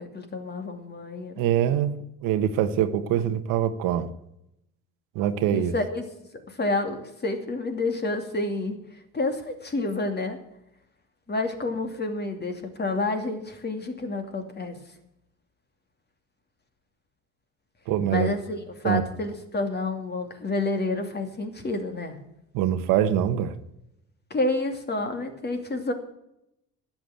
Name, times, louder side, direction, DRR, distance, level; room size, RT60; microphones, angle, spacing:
voice 1, 0.0-1.4 5.5-6.0 6.5-10.4 11.3-14.8 18.1-22.2 24.3-25.9, left 2 dB, 30° left, 2.6 m, -29 dB
voice 2, 1.4-4.1 5.1-5.7 17.9-18.3 18.8-19.0 22.5-23.6, right 10 dB, 90° right, 1.3 m, -24 dB
12.0 x 8.9 x 7.7 m
cardioid pair, 95°, 32 cm